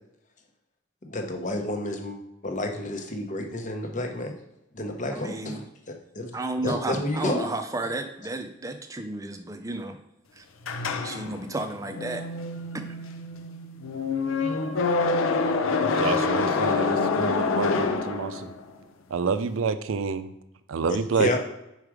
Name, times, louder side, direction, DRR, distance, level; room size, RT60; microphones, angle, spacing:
voice 1, 1.0-2.2 2.4-4.3 4.7-5.6 6.1-6.3 6.6-7.5 21.2-21.4, left 1 dB, 40° left, 4 dB, 0.9 m, -29 dB
voice 2, 5.1-5.7 6.3-10.0 10.3-10.5 11.0-12.2 12.7-12.9, right 2 dB, 15° right, 7 dB, 0.5 m, -33 dB
sound 1, 10.6-18.7, left 4 dB, 90° left, 0.6 m, -26 dB
voice 3, 16.0-18.5 19.1-20.3 20.7-21.4, right 5 dB, 80° right, 12 dB, 0.4 m, -28 dB
4.9 x 4.7 x 4.8 m, 0.87 s
head